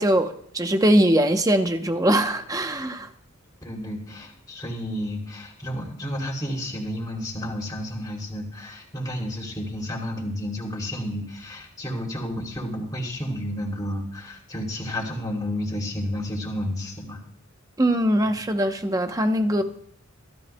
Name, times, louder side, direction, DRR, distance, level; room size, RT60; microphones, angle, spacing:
voice 1, 0.0-3.1 17.8-19.6, right 1 dB, 15° right, 0.8 m, -21 dB
voice 2, 3.6-17.2 18.2-18.3, left 1 dB, 15° left, 2.9 m, -31 dB
25.0 x 13.0 x 2.2 m
head